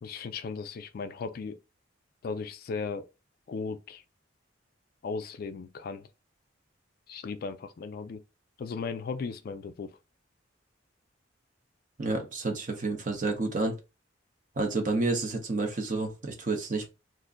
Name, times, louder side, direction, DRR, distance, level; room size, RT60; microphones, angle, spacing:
voice 1, 0.0-1.6 2.2-3.1 3.5-4.0 5.0-6.1 7.1-8.2 8.6-10.0, left 4 dB, 50° left, 0.3 m, -36 dB
voice 2, 12.0-13.8 14.6-16.9, right 3 dB, 45° right, 0.8 m, -30 dB
2.5 x 2.2 x 3.7 m
head